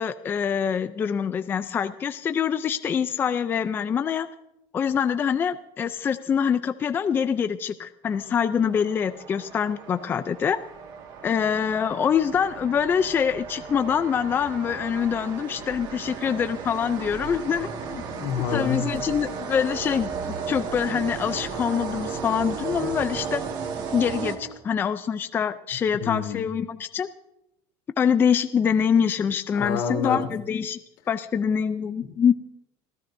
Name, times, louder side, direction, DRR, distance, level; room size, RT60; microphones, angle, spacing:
voice 1, 0.0-4.3 4.7-10.6 11.2-18.0 18.5-20.1 20.5-23.4 23.9-27.1 28.0-30.8 31.1-32.3, left 7 dB, 20° left, 11 dB, 0.4 m, -25 dB
sound 1, 8.0-24.9, right 6 dB, 45° right, 1.8 m, -35 dB
voice 2, 18.1-19.1 26.0-26.4 29.5-30.2, left 6 dB, 90° left, 2 dB, 2.9 m, -28 dB
26.5 x 15.0 x 2.6 m, 0.86 s
cardioid pair, 165°, 10 cm